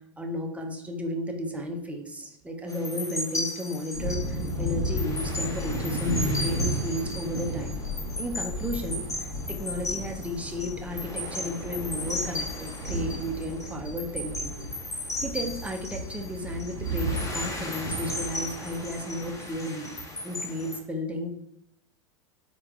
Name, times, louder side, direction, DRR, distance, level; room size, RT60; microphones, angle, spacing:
voice 1, 0.2-7.8 8.2-14.6 15.2-19.9 20.2-21.3, equal, 10° right, 2 dB, 0.5 m, -34 dB
sound 1, 2.7-20.8, left 2 dB, 20° left, 0.8 m, -36 dB
sound 2, 3.9-11.1, equal, 55° left, 1.2 m, -32 dB
sound 3, 7.3-19.5, right 2 dB, 65° right, 0.7 m, -38 dB
4.4 x 2.2 x 3.5 m, 0.78 s
figure-of-eight pair, 85°, 16 cm